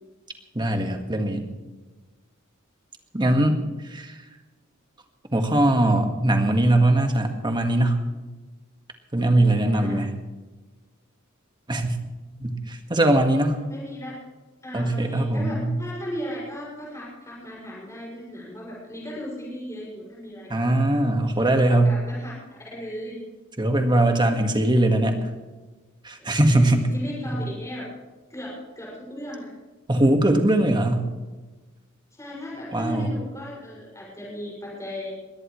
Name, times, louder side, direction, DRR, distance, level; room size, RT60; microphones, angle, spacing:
voice 1, 0.5-1.5 3.1-3.6 3.9-4.1 5.3-8.0 9.1-10.1 11.7-12.0 12.4-13.6 14.7-15.7 20.5-21.9 23.6-25.2 26.0-26.9 29.9-31.0 32.7-33.1, right 1 dB, 20° right, 5 dB, 1.8 m, -21 dB
voice 2, 9.6-10.0 13.7-14.1 14.6-20.8 21.3-21.5 21.8-23.2 26.2-26.5 26.9-27.9 28.3-29.5 32.1-35.2, equal, 15° left, -5 dB, 6.5 m, -36 dB
21.5 x 17.0 x 3.3 m, 1.2 s
head